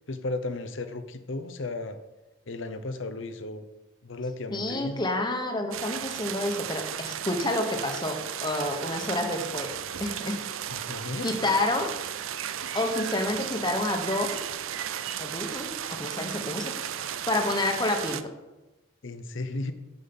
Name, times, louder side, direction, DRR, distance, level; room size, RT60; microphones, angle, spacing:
voice 1, 0.1-2.0 2.5-3.6 4.0-5.0 10.7-11.3 19.0-19.7, left 2 dB, 60° left, 10 dB, 0.8 m, -34 dB
voice 2, 4.5-9.7 10.0-10.4 11.2-11.9 12.7-14.5 15.2-16.7 17.3-18.2, left 2 dB, 20° left, 4 dB, 1.2 m, -29 dB
sound 1, 5.7-18.2, right 9 dB, 70° right, 0.5 m, -35 dB
7.7 x 7.5 x 5.4 m, 1.1 s
head